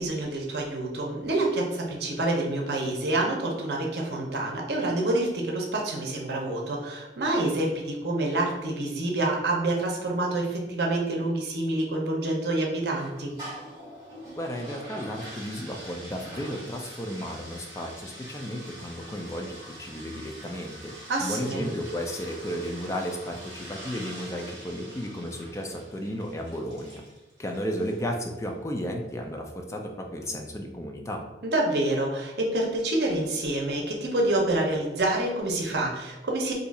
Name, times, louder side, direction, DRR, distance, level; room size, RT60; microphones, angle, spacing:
voice 1, 0.0-13.3 21.1-21.7 31.4-36.5, right 2 dB, 70° right, -1 dB, 0.7 m, -27 dB
sound 1, 12.9-28.2, right 1 dB, 25° right, 1.3 m, -44 dB
voice 2, 14.4-20.9 21.2-27.0 27.4-31.2, equal, 15° left, 2 dB, 0.3 m, -34 dB
2.7 x 2.4 x 4.0 m, 1.0 s
head